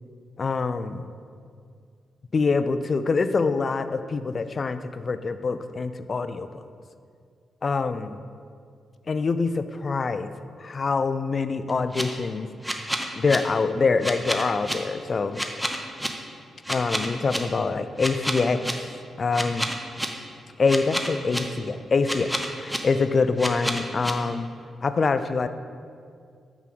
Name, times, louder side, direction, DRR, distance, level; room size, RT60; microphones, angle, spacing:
voice 1, 0.4-1.1 2.3-6.7 7.6-8.2 9.1-10.3 10.6-12.5 13.2-15.4 16.7-18.8 19.2-19.7 20.6-24.5 24.8-25.5, left 4 dB, 50° left, 11 dB, 0.4 m, -25 dB
sound 1, 11.7-12.0 12.6-13.4 14.0-14.7 15.4-16.1 16.6-17.4 18.0-18.7 19.3-20.1 20.7-21.4 22.0-22.8 23.4-24.1, equal, 5° right, 0.9 m, -28 dB
5.8 x 4.7 x 6.0 m, 2.2 s
hypercardioid pair, 40°, 0 cm